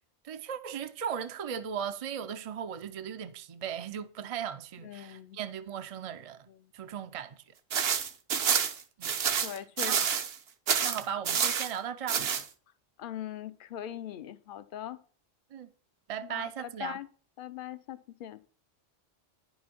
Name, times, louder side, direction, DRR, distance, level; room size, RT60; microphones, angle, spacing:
voice 1, 0.2-6.5 6.7-7.4 9.0-9.1 9.4-10.1 10.8-12.2 15.5-15.7 16.1-17.0, right 8 dB, 45° right, 0.5 m, -37 dB
voice 2, 4.8-5.4 9.4-9.9 13.0-15.0 16.3-16.5 16.8-17.1 17.4-18.4, left 11 dB, 60° left, 0.7 m, -40 dB
sound 1, 7.7-10.4 10.7-11.7 12.1-12.4, right 7 dB, 70° right, 1.0 m, -28 dB
10.5 x 5.6 x 4.4 m
omnidirectional pair, 1.1 m